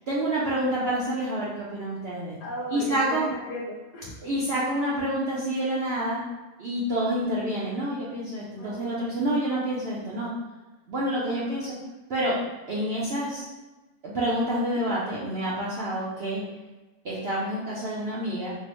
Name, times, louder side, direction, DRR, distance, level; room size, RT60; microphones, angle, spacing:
voice 1, 0.1-2.4 2.7-3.2 4.2-6.2 6.6-10.3 10.9-11.7 12.1-12.4 12.7-13.4 14.0-16.4 17.0-18.5, right 1 dB, 75° right, -7 dB, 0.5 m, -28 dB
voice 2, 2.4-4.2 7.2-7.4 8.6-8.8 12.8-13.0 14.5-14.8, equal, 80° left, -4 dB, 1.2 m, -36 dB
4.0 x 2.0 x 2.9 m, 1.2 s
omnidirectional pair, 1.7 m